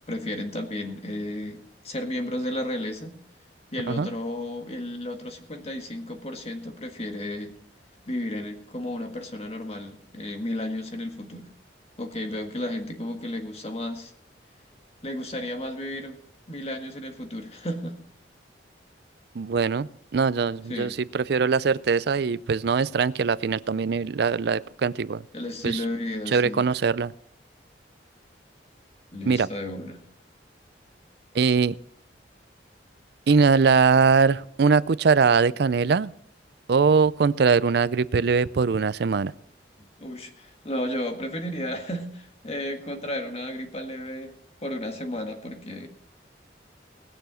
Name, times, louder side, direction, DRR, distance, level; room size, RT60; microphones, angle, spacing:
voice 1, 0.1-3.2 3.7-7.5 8.1-11.5 12.0-14.1 15.0-16.2 16.5-17.9 20.7-20.9 25.3-26.7 29.1-30.0 40.0-44.3 44.6-45.9, left 1 dB, 35° left, 5 dB, 1.8 m, -33 dB
voice 2, 19.3-25.2 25.6-25.8 26.3-27.1 29.3-29.5 31.3-31.7 33.3-36.1 36.7-39.3, right 5 dB, 60° right, 18 dB, 0.4 m, -22 dB
19.5 x 7.0 x 6.2 m, 0.70 s
head